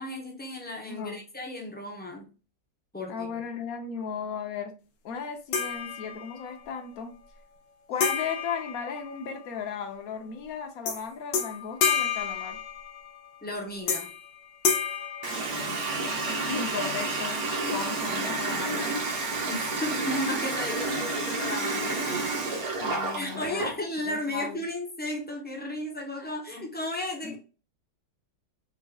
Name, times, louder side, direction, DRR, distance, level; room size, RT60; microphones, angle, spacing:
voice 1, 0.0-2.3 2.9-3.4 13.4-14.1 19.5-22.2 23.1-27.4, left 1 dB, 15° left, 0 dB, 0.4 m, -34 dB
voice 2, 0.9-1.2 3.1-4.7 5.0-7.1 7.9-12.6 16.5-18.9 22.8-23.7 24.0-24.6 27.2-27.3, left 6 dB, 60° left, 6 dB, 1.1 m, -36 dB
sound 1, 5.5-6.5 8.0-9.6 10.9-11.0 11.3-13.2 13.9-14.3 14.6-16.1, left 6 dB, 85° left, 1.4 m, -30 dB
Water tap faucet, 15.2-23.7, right 3 dB, 60° right, 1.4 m, -30 dB
4.0 x 3.7 x 2.3 m, 0.34 s
omnidirectional pair, 1.9 m